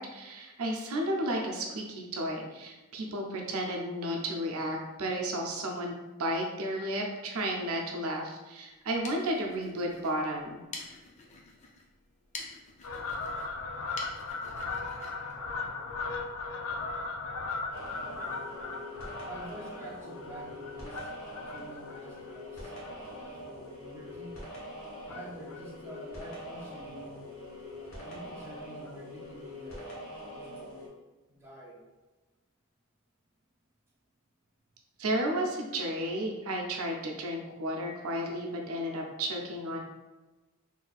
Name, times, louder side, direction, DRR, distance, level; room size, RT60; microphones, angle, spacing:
voice 1, 0.0-10.6 35.0-39.8, right 1 dB, 75° right, 1 dB, 0.6 m, -33 dB
sound 1, 8.7-16.2, left 3 dB, 30° left, 0.5 m, -48 dB
Fowl, 12.8-23.6 24.1-24.3 25.0-25.6 25.9-26.0 26.2-26.3 26.6-26.7 27.0-27.2 28.2-28.3 28.9-29.0, left 3 dB, 80° left, 0.5 m, -38 dB
sound 2, 17.7-30.9, left 1 dB, 65° left, 1.1 m, -44 dB
voice 2, 19.2-24.4 25.0-27.3 27.7-30.9 31.3-31.8, right 1 dB, 10° right, -5 dB, 0.6 m, -48 dB
4.0 x 2.7 x 2.4 m, 1.2 s
head